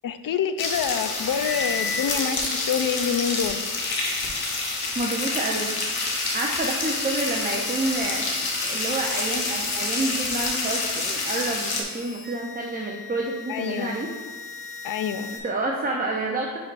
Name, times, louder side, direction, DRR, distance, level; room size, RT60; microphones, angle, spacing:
voice 1, 0.0-3.6 13.5-14.0 14.8-15.4, left 7 dB, 65° left, 11 dB, 0.5 m, -27 dB
sound 1, 0.6-11.8, left 3 dB, 90° left, 1.0 m, -28 dB
sound 2, 1.4-15.4, left 3 dB, ahead, 1.7 m, -38 dB
voice 2, 5.0-5.7 6.3-8.3 8.6-14.1 15.4-16.6, right 2 dB, 25° right, -1 dB, 0.6 m, -28 dB
10.5 x 4.7 x 2.5 m, 1.4 s
wide cardioid pair, 100°, 36 cm